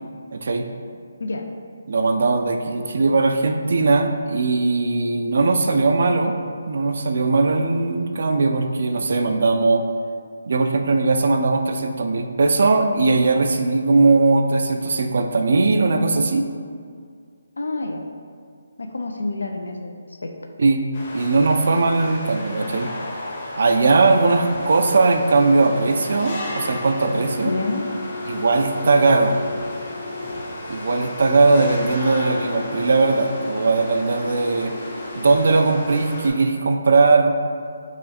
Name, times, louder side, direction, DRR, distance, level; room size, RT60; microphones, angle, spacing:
voice 1, 0.3-0.6 1.9-6.3 6.7-9.8 10.5-16.5 20.6-20.8 21.1-22.9 23.5-27.5 28.3-29.4 30.7-34.7 35.2-37.3, right 3 dB, 65° right, 6 dB, 0.3 m, -19 dB
voice 2, 17.6-18.0 18.8-20.0 20.2-20.3 27.4-27.8, left 2 dB, 90° left, 4 dB, 0.4 m, -27 dB
sound 1, 20.9-36.3, left 2 dB, 35° left, 0.7 m, -32 dB
4.8 x 2.4 x 2.7 m, 2.1 s
hypercardioid pair, 160°, 0 cm